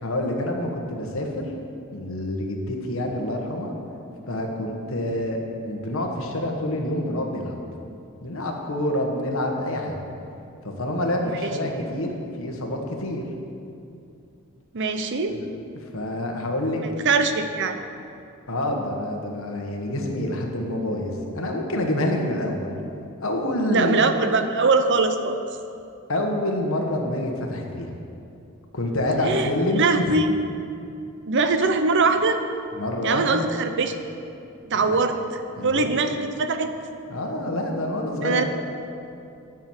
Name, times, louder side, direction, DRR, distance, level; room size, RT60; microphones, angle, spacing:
voice 1, 0.0-1.4 1.9-3.7 4.3-7.6 8.2-10.0 10.6-12.1 12.4-13.2 15.3-15.5 15.9-16.8 18.5-22.7 23.2-24.1 26.1-27.9 28.7-30.1 32.8-33.4 34.7-35.0 35.6-36.0 37.1-38.4, left 1 dB, 65° left, 2 dB, 1.3 m, -27 dB
voice 2, 14.7-15.3 17.0-17.8 23.7-25.4 29.2-29.5 29.8-30.3 31.3-32.4 33.0-33.9 34.7-35.2 35.6-36.7 38.2-38.4, right 4 dB, 55° right, 8 dB, 0.7 m, -22 dB
10.5 x 6.0 x 7.3 m, 2.6 s
head